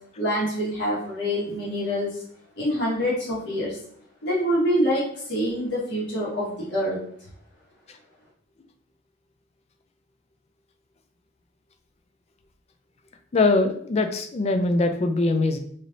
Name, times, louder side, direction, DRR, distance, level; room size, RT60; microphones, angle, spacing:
voice 1, 0.2-2.2 2.6-3.8 4.2-7.0, equal, 60° left, -6 dB, 1.5 m, -26 dB
voice 2, 13.3-15.6, left 3 dB, 30° left, 7 dB, 0.3 m, -22 dB
4.0 x 3.2 x 2.6 m, 0.62 s
head